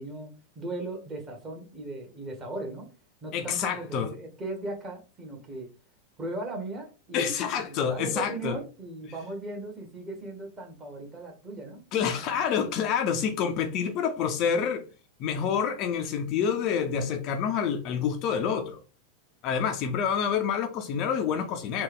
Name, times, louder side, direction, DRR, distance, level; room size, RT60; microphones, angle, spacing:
voice 1, 0.0-2.9 3.2-5.7 6.2-12.1, right 2 dB, 20° right, 1.3 m, -38 dB
voice 2, 3.3-4.1 7.1-8.6 11.9-14.8 15.2-18.8 19.4-21.8, left 7 dB, 40° left, 0.5 m, -27 dB
3.4 x 2.4 x 3.5 m
figure-of-eight pair, 90°, 0 cm